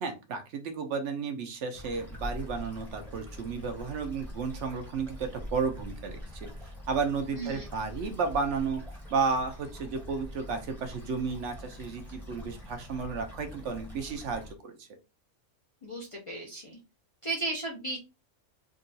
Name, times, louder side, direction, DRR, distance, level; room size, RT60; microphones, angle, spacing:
voice 1, 0.0-6.5 6.9-8.8 9.1-14.9, right 5 dB, 65° right, 6 dB, 0.9 m, -33 dB
sound 1, 1.7-14.5, left 1 dB, ahead, 0.8 m, -44 dB
voice 2, 7.3-7.7 15.8-16.8 17.2-18.0, right 2 dB, 35° left, -2 dB, 0.5 m, -35 dB
3.7 x 2.3 x 2.6 m, 0.28 s
omnidirectional pair, 1.4 m